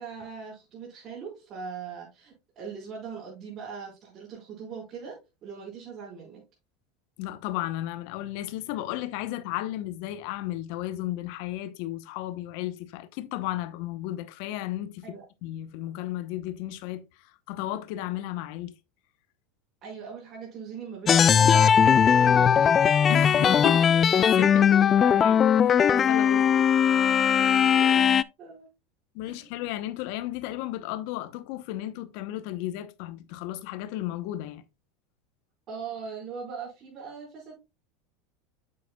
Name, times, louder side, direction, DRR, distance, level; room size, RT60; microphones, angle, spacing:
voice 1, 0.0-6.4 15.0-15.2 19.8-22.8 26.6-26.7 27.7-28.1 28.4-28.7 29.2-29.5 35.7-37.6, right 6 dB, 40° right, 4.4 m, -40 dB
voice 2, 7.2-15.0 15.4-18.7 23.1-26.6 29.1-34.6, left 14 dB, 65° left, 0.8 m, -34 dB
sound 1, 21.1-28.2, left 8 dB, 30° left, 0.3 m, -19 dB
8.2 x 7.6 x 2.3 m
supercardioid pair, 115°, 0 cm